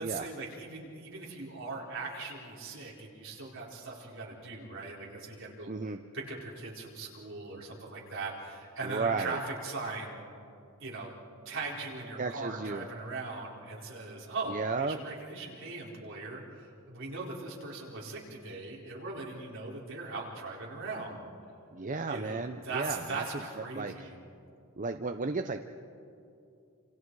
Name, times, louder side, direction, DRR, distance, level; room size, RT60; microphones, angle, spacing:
voice 1, 0.0-5.7 6.1-10.2 10.8-11.1 11.4-21.2 22.1-24.2, right 3 dB, 60° right, -3 dB, 4.5 m, -40 dB
voice 2, 5.7-6.0 8.8-9.4 12.2-12.9 14.5-15.0 21.7-23.2 23.6-24.1 24.8-25.6, right 4 dB, 35° right, 7 dB, 0.7 m, -34 dB
28.0 x 27.5 x 4.8 m, 2.6 s
head